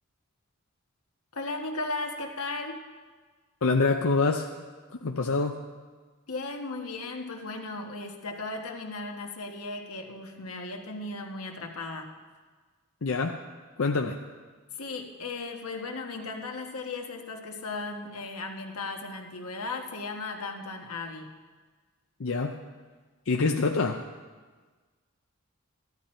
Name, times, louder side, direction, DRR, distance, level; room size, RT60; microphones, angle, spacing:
voice 1, 1.3-2.8 6.3-12.1 14.7-21.3, left 3 dB, 90° left, 3 dB, 1.4 m, -36 dB
voice 2, 3.6-4.5 5.0-5.5 13.0-13.4 13.8-14.2 22.2-22.6 23.3-24.0, left 3 dB, 65° left, 3 dB, 0.6 m, -25 dB
14.0 x 11.5 x 4.4 m, 1.4 s
head